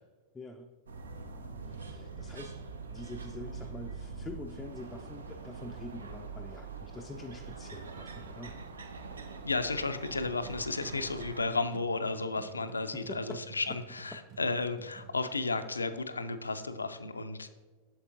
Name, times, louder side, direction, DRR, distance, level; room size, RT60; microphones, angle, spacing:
voice 1, 0.3-0.7 1.6-2.6 2.9-8.6 12.9-13.4 14.1-14.2, left 1 dB, 10° left, 3 dB, 0.4 m, -45 dB
sound 1, 0.9-11.4, right 4 dB, 70° right, 0.5 m, -44 dB
voice 2, 9.4-17.5, left 3 dB, 80° left, 10 dB, 0.4 m, -33 dB
sound 2, 10.1-15.2, right 5 dB, 40° right, 2.3 m, -52 dB
8.5 x 6.7 x 2.5 m, 1.4 s
figure-of-eight pair, 90°, 0 cm